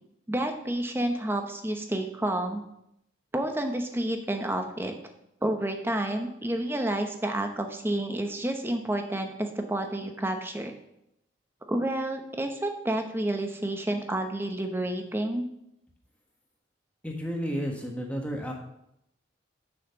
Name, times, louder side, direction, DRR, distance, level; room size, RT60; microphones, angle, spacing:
voice 1, 0.3-2.6 3.3-4.9 5.4-10.7 11.7-15.5, right 1 dB, 10° right, 5 dB, 0.9 m, -30 dB
voice 2, 17.0-18.5, equal, 5° left, 0 dB, 1.3 m, -32 dB
6.7 x 5.8 x 6.9 m, 0.80 s
head